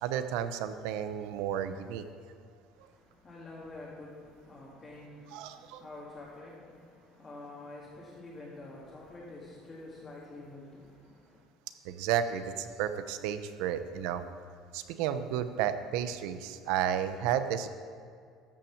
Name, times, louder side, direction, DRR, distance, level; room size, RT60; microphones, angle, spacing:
voice 1, 0.0-2.0 5.3-5.8 11.8-14.2 14.7-17.7, right 9 dB, 75° right, 11 dB, 0.7 m, -32 dB
voice 2, 2.7-11.4, left 2 dB, 15° left, -6 dB, 1.8 m, -48 dB
13.5 x 5.9 x 7.1 m, 2.3 s
cardioid pair, 175°, 0 cm